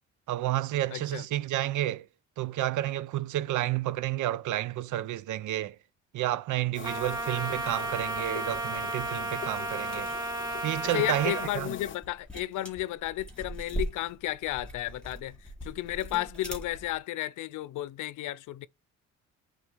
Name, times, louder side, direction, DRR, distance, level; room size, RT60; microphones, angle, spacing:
voice 1, 0.3-2.1 2.4-5.8 6.1-10.1 10.6-11.7, right 14 dB, 80° right, 0.6 m, -30 dB
voice 2, 0.9-1.2 10.9-18.7, left 15 dB, 80° left, 0.6 m, -33 dB
sound 1, 6.7-12.0, left 8 dB, 40° left, 0.6 m, -42 dB
Trumpet, 6.8-11.5, right 2 dB, 15° right, 1.0 m, -33 dB
sound 2, 9.3-17.0, right 1 dB, 5° left, 4.4 m, -41 dB
8.6 x 3.8 x 4.6 m
cardioid pair, 90°, 30 cm